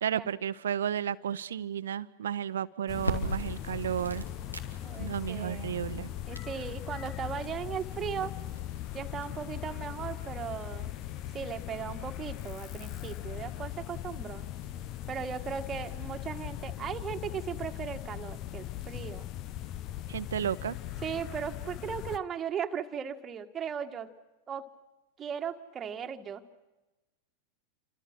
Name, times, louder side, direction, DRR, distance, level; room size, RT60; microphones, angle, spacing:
voice 1, 0.0-4.2 5.0-6.1 20.1-20.8, right 9 dB, 65° right, 15 dB, 0.9 m, -32 dB
sound 1, 2.9-22.2, left 13 dB, 35° left, 0.8 m, -39 dB
sound 2, 3.0-16.5, right 1 dB, 90° left, 2.7 m, -44 dB
voice 2, 4.8-5.7 6.2-8.3 8.9-10.9 11.3-14.5 15.1-19.3 21.0-24.1 24.5-24.7 25.2-26.4, right 7 dB, 25° right, 5 dB, 1.7 m, -37 dB
29.0 x 25.5 x 6.1 m, 1.1 s
figure-of-eight pair, 90°, 0 cm